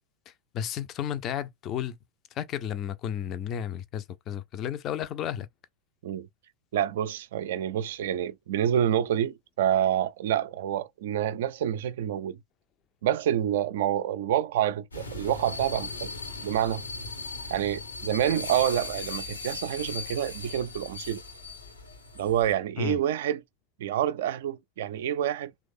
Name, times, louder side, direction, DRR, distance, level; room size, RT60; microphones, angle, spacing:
voice 1, 0.3-2.0 2.3-5.5 22.8-23.0, left 9 dB, 35° left, 0.4 m, -33 dB
voice 2, 6.7-12.4 13.0-16.1 16.4-16.8 17.5-21.2 22.2-23.4 23.8-25.5, right 10 dB, 55° right, 0.3 m, -27 dB
sound 1, 14.9-22.5, left 3 dB, 80° left, 0.9 m, -38 dB
3.1 x 2.3 x 3.5 m
figure-of-eight pair, 90°, 0 cm